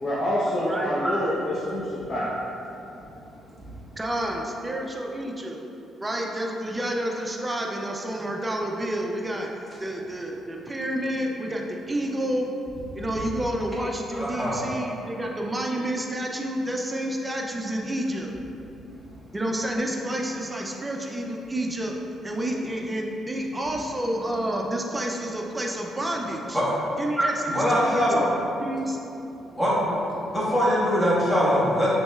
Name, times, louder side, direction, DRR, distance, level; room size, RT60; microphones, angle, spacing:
voice 1, 0.0-2.4, equal, 40° left, -7 dB, 0.8 m, -27 dB
voice 2, 4.0-5.6 6.0-12.5 13.0-18.4 19.3-21.9 22.2-26.6 27.0-29.0, right 1 dB, 20° right, 0 dB, 0.5 m, -29 dB
voice 3, 14.1-14.6 26.5-26.6 27.5-28.3 29.6-29.7 30.3-31.9, equal, 10° left, -8 dB, 1.3 m, -22 dB
5.9 x 3.1 x 2.4 m, 2.9 s
cardioid pair, 90°, 0 cm